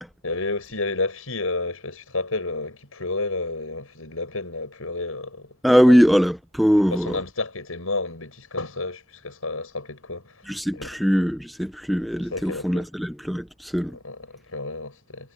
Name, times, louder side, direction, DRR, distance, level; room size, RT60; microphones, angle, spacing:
voice 1, 0.2-5.6 5.9-6.0 7.1-10.9 12.3-12.9 14.0-15.3, left 3 dB, 75° left, 7.0 m, -31 dB
voice 2, 5.6-7.2 10.5-14.0, equal, ahead, 0.6 m, -21 dB
head